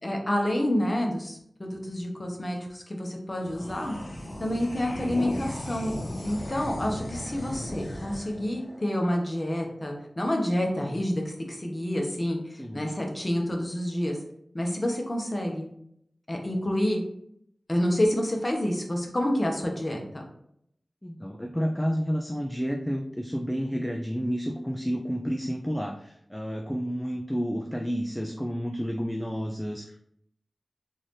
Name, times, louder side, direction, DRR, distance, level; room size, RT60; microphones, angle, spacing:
voice 1, 0.0-4.0 4.4-5.9 6.2-14.2 14.5-15.7 16.3-17.0 17.7-20.2, left 1 dB, 35° left, 1 dB, 1.0 m, -28 dB
sound 1, 3.4-10.1, left 1 dB, 90° left, 1.0 m, -37 dB
voice 2, 21.0-30.0, equal, 10° left, 3 dB, 0.4 m, -30 dB
3.9 x 2.6 x 3.2 m, 0.72 s
wide cardioid pair, 45°, 0 cm